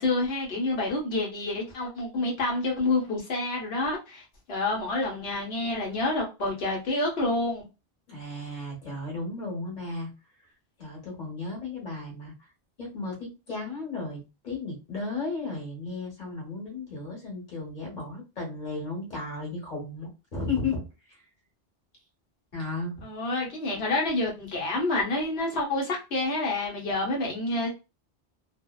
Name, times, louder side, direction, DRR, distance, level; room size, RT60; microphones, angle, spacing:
voice 1, 0.0-7.7 23.0-27.7, left 2 dB, 70° left, 1.2 m, -28 dB
voice 2, 8.1-10.1 10.8-12.3 12.8-21.2 22.5-22.9, left 3 dB, 45° left, 1.3 m, -34 dB
2.6 x 2.1 x 2.2 m
omnidirectional pair, 1.1 m